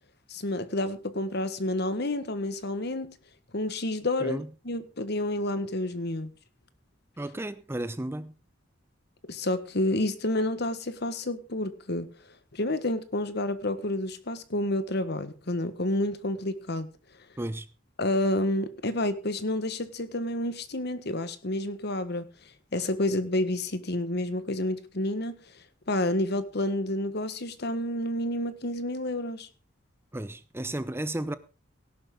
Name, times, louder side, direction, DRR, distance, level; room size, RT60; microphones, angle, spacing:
voice 1, 0.3-3.2 3.5-4.4 4.6-6.3 9.3-12.1 12.5-16.9 18.0-22.3 22.7-25.4 25.9-29.5, left 1 dB, 55° left, 1.5 m, -29 dB
voice 2, 7.2-8.3 17.4-17.7 30.1-31.3, right 1 dB, 10° right, 0.7 m, -33 dB
18.0 x 11.0 x 3.8 m
head